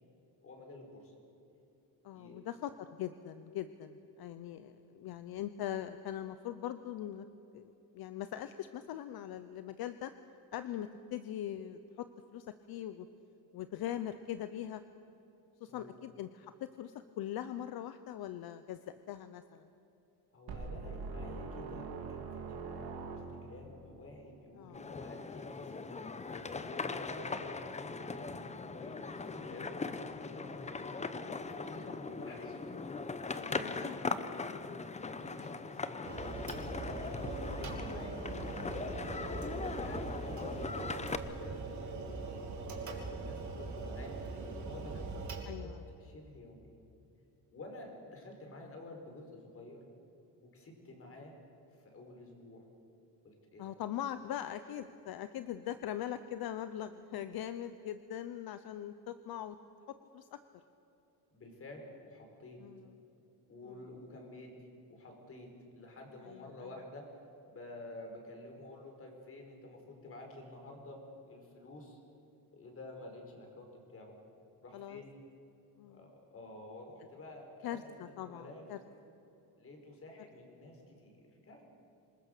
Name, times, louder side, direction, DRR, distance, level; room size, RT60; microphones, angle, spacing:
voice 1, 0.4-1.1 2.1-2.4 15.7-15.9 20.3-29.0 29.2-32.7 33.2-33.8 35.0-45.7 46.0-46.7 47.5-49.8 50.4-51.3 51.8-52.6 53.2-53.7 61.3-62.6 63.5-65.5 65.7-67.1 67.5-71.0 71.3-72.0 72.5-74.2 74.6-75.1 75.9-78.6 79.6-81.2 81.4-81.6, left 1 dB, 35° left, 2 dB, 5.1 m, -50 dB
voice 2, 2.0-7.3 7.5-10.1 10.5-12.1 12.3-13.1 13.5-14.8 15.6-19.7 24.6-24.8 33.4-34.0 34.4-35.1 35.4-35.5 45.5-45.8 53.6-59.6 59.9-60.4 62.6-63.0 63.6-63.8 66.2-66.7 74.7-75.0 75.8-76.1 77.6-78.8, left 11 dB, 70° left, 11 dB, 0.9 m, -41 dB
sound 1, 20.5-23.7, right 4 dB, 75° right, 3.5 m, -42 dB
sound 2, 24.7-41.2, left 4 dB, 20° left, 0.8 m, -40 dB
sound 3, 36.0-45.4, right 3 dB, 45° right, 3.1 m, -41 dB
27.0 x 20.5 x 6.7 m, 2.8 s
cardioid pair, 150°, 39 cm